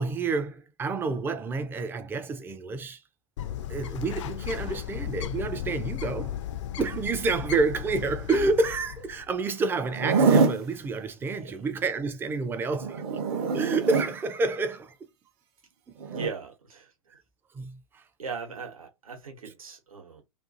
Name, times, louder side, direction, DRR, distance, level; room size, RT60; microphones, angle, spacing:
voice 1, 0.0-3.0 3.7-6.4 6.8-13.0 13.5-14.9 17.5-18.0, right 3 dB, 10° right, 0.4 m, -29 dB
Bird, 3.4-9.3, left 11 dB, 55° left, 0.4 m, -35 dB
Zipper (clothing), 9.9-10.6 12.8-14.1 16.0-16.3, right 4 dB, 45° right, 0.7 m, -24 dB
voice 2, 16.1-16.9 18.2-20.2, right 5 dB, 75° right, 1.0 m, -38 dB
2.5 x 2.5 x 2.5 m
figure-of-eight pair, 100°, 18 cm